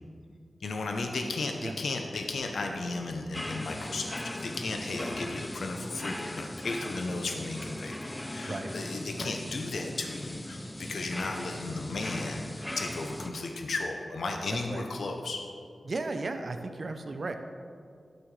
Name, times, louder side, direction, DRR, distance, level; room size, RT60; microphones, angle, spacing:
voice 1, 0.6-15.4, left 3 dB, 80° left, 3 dB, 0.7 m, -35 dB
sound 1, 3.3-13.3, left 1 dB, 15° left, 0.4 m, -39 dB
voice 2, 15.8-17.4, right 3 dB, 50° right, 7 dB, 0.6 m, -35 dB
12.5 x 6.3 x 3.2 m, 2.3 s
wide cardioid pair, 120°, 0 cm